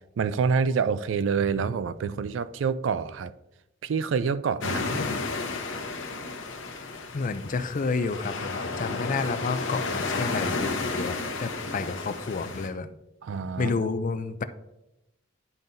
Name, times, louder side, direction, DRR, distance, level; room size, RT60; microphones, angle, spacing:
voice 1, 0.2-3.3 3.8-4.8 13.2-13.8, right 5 dB, 70° right, 0.4 m, -27 dB
sound 1, 4.6-12.7, left 3 dB, 85° left, 0.9 m, -32 dB
voice 2, 4.6-5.2 7.1-12.9 13.6-14.4, left 4 dB, 45° left, 0.4 m, -30 dB
10.5 x 5.6 x 2.7 m
head